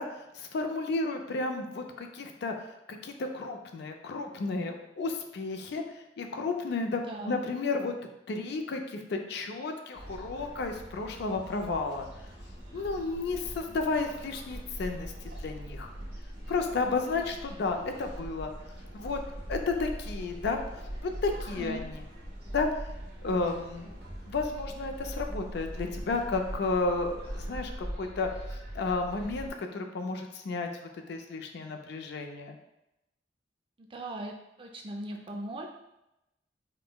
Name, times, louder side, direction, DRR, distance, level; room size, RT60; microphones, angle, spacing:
voice 1, 0.0-5.8 6.2-8.0 8.3-12.1 12.7-15.1 15.4-15.9 16.5-18.5 18.9-19.2 19.5-22.0 22.5-22.7 23.2-23.9 24.3-30.7 31.1-32.6, left 3 dB, 65° left, 5 dB, 0.4 m, -32 dB
voice 2, 7.1-7.4 21.5-21.8 33.8-34.3 34.6-35.7, right 1 dB, 30° right, 2 dB, 0.4 m, -38 dB
sound 1, 9.9-29.5, equal, 65° right, 1.0 m, -41 dB
5.1 x 2.0 x 2.2 m, 0.89 s
head